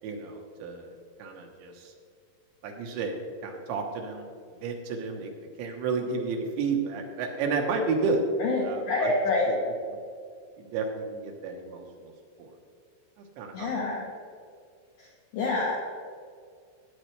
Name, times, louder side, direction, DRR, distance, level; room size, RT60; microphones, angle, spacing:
voice 1, 0.0-0.9 1.2-1.9 2.6-3.2 3.4-5.3 5.6-8.2 8.6-9.1 9.5-9.6 10.6-12.1 12.4-12.6 13.2-13.8, right 4 dB, 80° right, 2 dB, 3.5 m, -31 dB
voice 2, 8.4-9.6 13.5-14.0 15.3-15.8, left 3 dB, 75° left, -3 dB, 1.8 m, -27 dB
16.0 x 8.7 x 3.3 m, 2.2 s
omnidirectional pair, 5.1 m